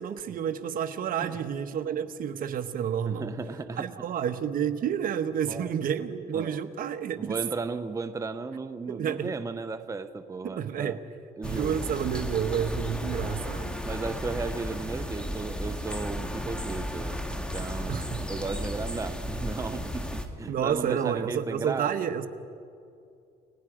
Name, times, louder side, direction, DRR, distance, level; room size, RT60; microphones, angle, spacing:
voice 1, 0.0-3.3 3.8-7.4 8.9-9.3 10.4-11.0 11.4-13.8 17.9-18.3 20.5-22.3, right 8 dB, 55° right, 9 dB, 1.1 m, -30 dB
voice 2, 3.0-3.9 5.5-5.7 6.3-6.6 7.2-11.0 11.4-11.9 13.8-21.9, right 4 dB, 20° right, 9 dB, 0.8 m, -35 dB
sound 1, 11.4-20.3, equal, 5° left, 1.8 m, -34 dB
30.0 x 18.0 x 5.0 m, 2.4 s
cardioid pair, 110°, 17 cm